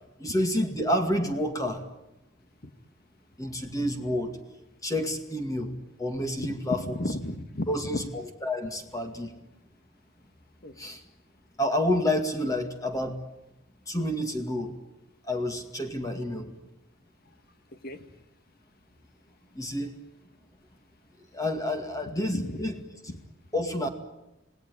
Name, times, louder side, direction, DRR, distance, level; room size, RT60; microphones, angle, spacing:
voice 1, 0.2-1.8 3.4-4.4 4.8-6.8 7.7-8.0 8.4-9.3 10.8-11.0 11.6-13.2 13.9-14.8 15.2-16.5 19.5-19.9 21.3-22.7 23.5-23.9, left 1 dB, 15° left, 5 dB, 2.1 m, -29 dB
voice 2, 6.4-8.0 10.6-10.8 17.7-18.1 22.3-22.6 23.1-23.2, left 1 dB, 50° left, 9 dB, 1.8 m, -34 dB
27.5 x 18.5 x 9.8 m, 0.95 s
head